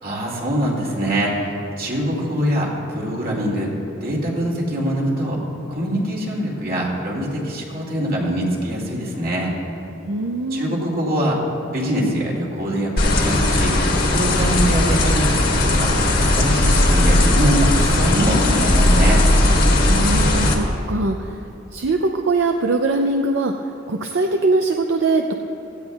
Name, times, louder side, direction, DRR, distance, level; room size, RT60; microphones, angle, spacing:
voice 1, 0.0-3.7 4.0-5.4 5.7-9.5 10.5-11.4 11.7-13.8 14.1-15.9 16.2-19.2, equal, 50° right, -3 dB, 2.4 m, -23 dB
voice 2, 10.1-10.8 19.9-21.4 21.7-25.3, right 3 dB, 75° right, 4 dB, 0.5 m, -22 dB
sound 1, 13.0-20.6, left 1 dB, 50° left, 1.5 m, -17 dB
16.5 x 14.5 x 2.4 m, 2.8 s
head